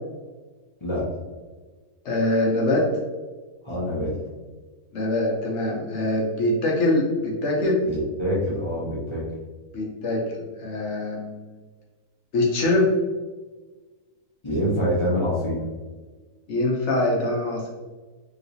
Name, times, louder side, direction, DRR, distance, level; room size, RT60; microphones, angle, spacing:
voice 1, 2.0-2.9 4.9-7.8 9.7-11.5 12.3-12.9 16.5-17.7, left 2 dB, 60° left, -2 dB, 0.8 m, -23 dB
voice 2, 3.6-4.1 7.8-9.3 14.4-15.6, equal, 30° left, -8 dB, 0.5 m, -25 dB
3.0 x 2.9 x 2.7 m, 1.3 s
omnidirectional pair, 1.6 m